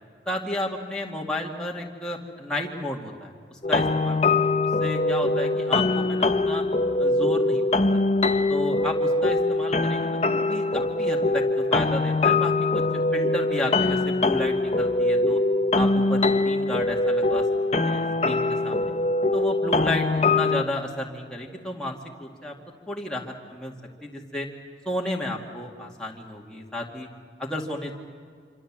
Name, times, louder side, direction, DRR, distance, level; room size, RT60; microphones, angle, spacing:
voice 1, 0.3-4.5 4.8-6.6 7.0-8.0 8.5-15.4 15.7-17.4 17.7-18.9 19.3-22.5 22.9-23.7 24.0-24.5 24.9-27.1 27.4-27.9, left 1 dB, 5° left, -3 dB, 2.3 m, -32 dB
sound 1, 3.6-20.6, left 2 dB, 35° left, 0.8 m, -23 dB
26.5 x 26.0 x 7.5 m, 2.1 s
head